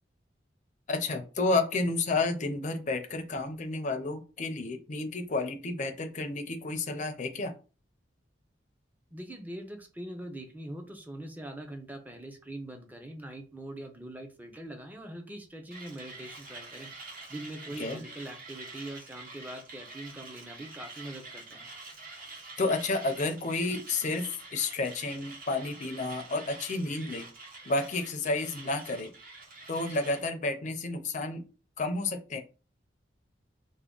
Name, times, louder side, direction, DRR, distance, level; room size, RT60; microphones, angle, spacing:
voice 1, 0.9-7.5 17.8-18.0 22.6-24.3 24.5-27.3 27.7-29.1 29.7-31.4 31.8-32.4, left 3 dB, 40° left, 6 dB, 0.5 m, -31 dB
voice 2, 9.1-16.9 17.3-21.7, right 1 dB, 10° right, 4 dB, 0.5 m, -42 dB
Mechanisms, 15.7-30.2, right 3 dB, 50° right, 1.0 m, -46 dB
3.4 x 2.1 x 3.7 m, 0.34 s
head